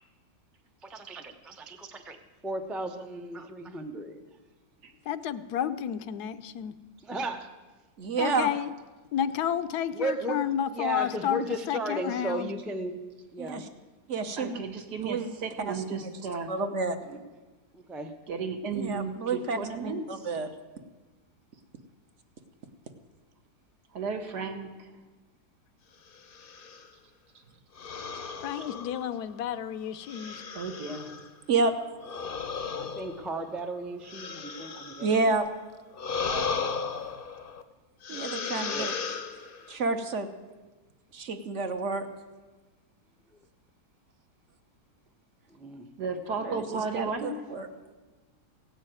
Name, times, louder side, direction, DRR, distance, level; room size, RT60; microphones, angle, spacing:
voice 1, 0.8-4.2 7.0-7.5 9.9-12.9 13.3-13.6 17.0-17.2 17.7-18.1 32.8-35.3 36.1-36.6 38.6-39.0 45.5-45.9, right 1 dB, ahead, 5 dB, 0.4 m, -35 dB
voice 2, 5.1-6.7 8.2-8.7 9.1-12.5 28.4-30.4, left 9 dB, 75° left, 13 dB, 1.1 m, -31 dB
voice 3, 8.0-8.5 13.4-13.7 14.1-14.6 15.0-15.3 15.7-16.1 16.5-17.0 18.7-19.6 19.8-20.5 28.3-28.4 31.5-31.7 35.0-35.4 38.1-39.0 39.7-40.3 41.1-42.1 46.4-47.7, right 3 dB, 55° right, 8 dB, 1.1 m, -29 dB
voice 4, 14.4-16.5 18.3-20.4 23.9-24.9 27.3-27.4 30.5-31.1 46.0-47.4, right 4 dB, 75° right, 5 dB, 1.9 m, -34 dB
sound 1, 26.2-26.9 27.8-29.4 30.0-31.3 32.0-35.4 35.9-37.6 38.0-39.8, left 5 dB, 45° left, 0.7 m, -36 dB
16.5 x 6.4 x 9.0 m, 1.3 s
omnidirectional pair, 1.7 m